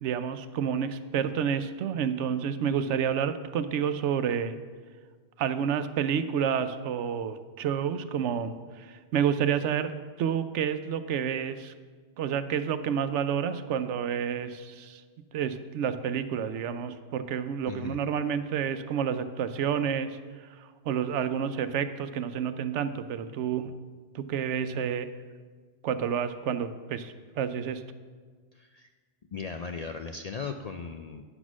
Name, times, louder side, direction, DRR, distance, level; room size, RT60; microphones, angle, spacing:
voice 1, 0.0-4.5 5.4-8.5 8.8-9.9 10.2-11.7 12.2-15.0 15.3-20.2 20.6-23.7 24.1-25.1 25.8-27.8, right 8 dB, 85° right, 11 dB, 0.9 m, -29 dB
voice 2, 17.7-18.0 28.5-28.9 29.3-31.2, left 5 dB, 60° left, 5 dB, 0.4 m, -37 dB
9.9 x 6.2 x 6.0 m, 1.5 s
omnidirectional pair, 1.2 m